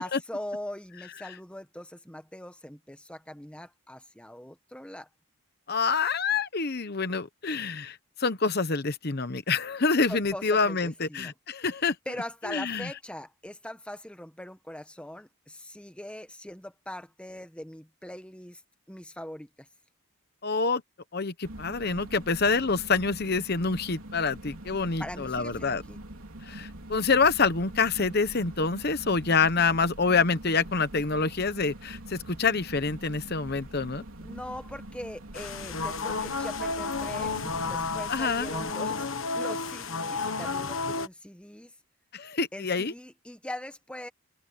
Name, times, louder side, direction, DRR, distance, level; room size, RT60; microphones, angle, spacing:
voice 1, 0.0-5.1 10.1-11.3 12.1-18.6 18.9-19.7 25.0-26.0 34.2-41.7 42.5-44.1, left 1 dB, 5° left, 1.2 m, -41 dB
voice 2, 5.7-12.0 12.5-12.9 20.4-20.8 21.1-25.8 26.4-34.0 38.1-38.5 42.1-42.9, left 4 dB, 45° left, 1.0 m, -27 dB
sound 1, 21.4-38.7, right 1 dB, 70° right, 3.4 m, -44 dB
sound 2, 35.3-41.1, left 4 dB, 65° left, 1.4 m, -32 dB
open air
head